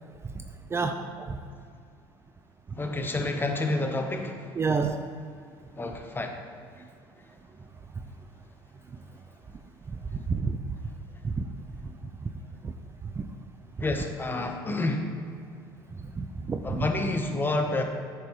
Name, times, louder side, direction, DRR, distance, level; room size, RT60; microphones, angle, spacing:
voice 1, 0.7-1.4 4.6-5.0 10.1-10.6 11.2-11.4 12.6-12.7 13.2-13.3 16.2-16.9, right 4 dB, 25° right, 7 dB, 0.5 m, -29 dB
voice 2, 2.8-4.4 5.8-6.4 13.8-15.1 16.6-17.8, left 2 dB, 20° left, 4 dB, 1.0 m, -29 dB
8.9 x 6.8 x 3.2 m, 2.2 s
hypercardioid pair, 75°, 11 cm